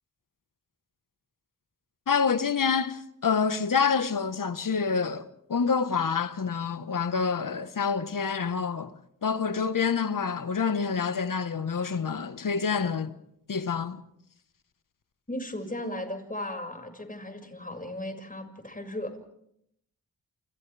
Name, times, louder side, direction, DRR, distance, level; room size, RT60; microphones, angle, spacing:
voice 1, 2.1-8.9 9.2-13.1 13.5-14.0, left 5 dB, 60° left, 1.4 m, -27 dB
voice 2, 15.3-19.1, left 1 dB, 20° left, 6.2 m, -36 dB
29.5 x 28.5 x 3.5 m
cardioid pair, 55°, 37 cm